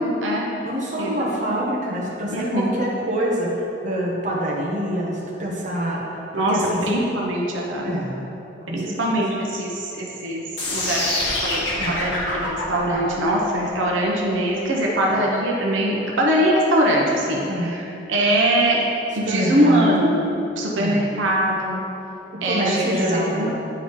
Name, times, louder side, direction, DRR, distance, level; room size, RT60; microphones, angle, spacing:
voice 1, 0.0-0.5 1.0-1.6 2.3-2.7 6.3-7.9 8.7-10.4 10.7-11.1 11.4-11.6 11.9-17.8 18.1-18.8 19.2-21.8 22.4-23.5, right 1 dB, 85° right, -3 dB, 0.9 m, -22 dB
voice 2, 0.6-6.2 6.5-6.8 7.8-8.2 8.7-9.2 11.8-12.0 12.8-13.1 17.5-17.8 19.2-19.9 20.8-21.0 22.3-23.5, equal, 40° right, -5 dB, 1.3 m, -26 dB
sound 1, 10.6-16.6, left 1 dB, 75° left, 1.5 m, -27 dB
9.5 x 3.9 x 4.8 m, 2.9 s
head